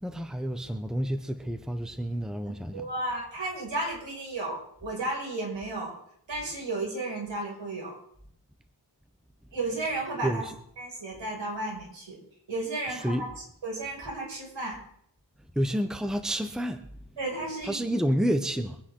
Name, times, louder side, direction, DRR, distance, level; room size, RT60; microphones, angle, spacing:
voice 1, 0.0-2.9 10.2-10.5 12.9-13.3 15.5-16.8 17.6-18.8, equal, ahead, 8 dB, 1.1 m, -29 dB
voice 2, 2.7-5.9 6.3-7.9 9.5-10.5 10.8-12.2 12.5-13.3 13.6-14.8 17.2-17.8, right 2 dB, 75° right, -2 dB, 6.4 m, -33 dB
24.0 x 9.6 x 3.9 m, 0.68 s
wide cardioid pair, 70°, 45 cm